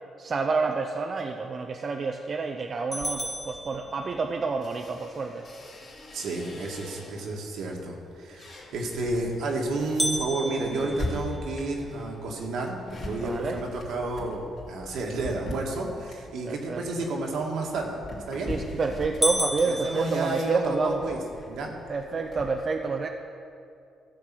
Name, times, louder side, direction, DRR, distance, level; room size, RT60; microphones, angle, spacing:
voice 1, 0.2-5.5 13.2-13.6 16.4-17.0 18.5-21.0 21.9-23.1, right 4 dB, 45° right, 4 dB, 0.6 m, -29 dB
sound 1, 2.9-7.4 7.9-22.6, left 1 dB, 55° left, 2.9 m, -42 dB
sound 2, 2.9-4.5 10.0-12.1 12.7-12.8 13.3-13.4 14.0-14.3 17.9-18.4 18.7-18.8 19.2-20.9, equal, 5° left, 0.6 m, -32 dB
voice 2, 6.1-18.0 18.3-18.5 19.7-21.2 21.5-21.7, right 2 dB, 75° right, 0 dB, 1.8 m, -31 dB
14.0 x 4.7 x 7.7 m, 2.6 s
cardioid pair, 90°, 0 cm